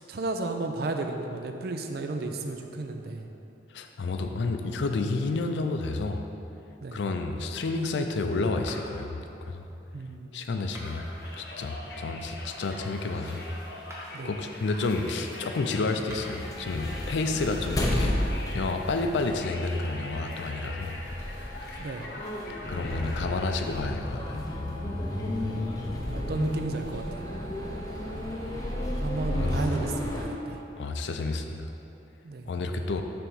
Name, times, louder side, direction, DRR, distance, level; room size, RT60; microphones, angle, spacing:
voice 1, 0.1-3.3 6.8-7.0 9.9-10.5 14.1-14.3 21.8-22.1 22.9-23.3 25.1-27.0 29.0-30.6 32.2-32.5, right 2 dB, 60° right, 5 dB, 0.4 m, -33 dB
voice 2, 3.7-6.2 6.9-9.6 10.3-11.1 11.4-13.4 14.2-21.0 22.7-24.4 29.3-29.6 30.8-31.7 32.5-33.0, left 3 dB, 80° left, 5 dB, 0.4 m, -30 dB
sound 1, 8.6-9.1 10.6-11.2 13.7-14.3 16.0-16.5, equal, 15° right, 0.8 m, -46 dB
Conversation, 10.8-23.8, left 1 dB, 55° left, 0.8 m, -43 dB
sound 2, 16.3-30.2, left 1 dB, 20° left, 0.6 m, -33 dB
5.8 x 3.5 x 5.5 m, 2.9 s
head